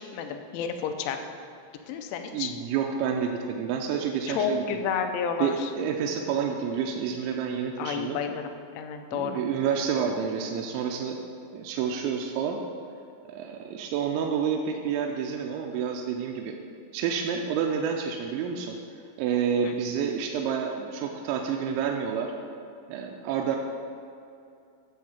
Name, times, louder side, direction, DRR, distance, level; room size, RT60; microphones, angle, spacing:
voice 1, 0.1-1.2 1.9-2.5 4.3-5.7 7.8-9.4 19.6-19.7, left 6 dB, 85° left, 6 dB, 3.1 m, -31 dB
voice 2, 2.3-4.6 5.4-8.2 9.1-11.2 11.5-12.6 13.3-16.6 16.9-18.8 19.2-22.3 22.9-23.6, right 7 dB, 85° right, 1 dB, 2.9 m, -29 dB
10.5 x 3.7 x 7.1 m, 2.6 s
omnidirectional pair, 5.3 m